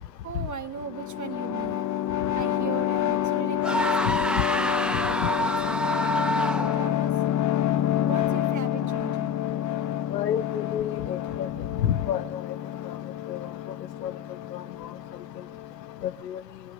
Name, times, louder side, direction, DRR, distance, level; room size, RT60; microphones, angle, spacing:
voice 1, 0.2-1.8 2.3-7.1 8.1-9.4, right 7 dB, 40° right, 7 dB, 1.7 m, -38 dB
sound 1, 0.8-16.2, left 12 dB, 35° left, 1.0 m, -28 dB
sound 2, 3.6-7.0, right 1 dB, ahead, 1.4 m, -27 dB
voice 2, 10.1-11.5 11.8-12.4 13.3-13.5 14.0-14.1 14.5-14.6 16.0-16.4, left 10 dB, 90° left, 17 dB, 0.8 m, -29 dB
28.5 x 21.0 x 5.4 m, 0.80 s
hypercardioid pair, 60°, 48 cm